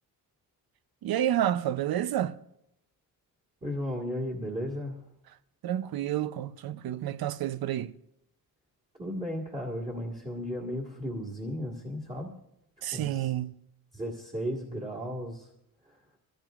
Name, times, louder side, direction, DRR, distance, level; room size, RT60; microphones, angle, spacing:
voice 1, 1.0-2.4 5.6-7.9 12.8-13.6, right 11 dB, 75° right, 0.6 m, -29 dB
voice 2, 3.6-5.0 9.0-12.3 12.9-13.3 13.9-15.5 15.9-16.0, equal, 20° right, 1.8 m, -35 dB
22.0 x 15.0 x 2.4 m
wide cardioid pair, 160°, 37 cm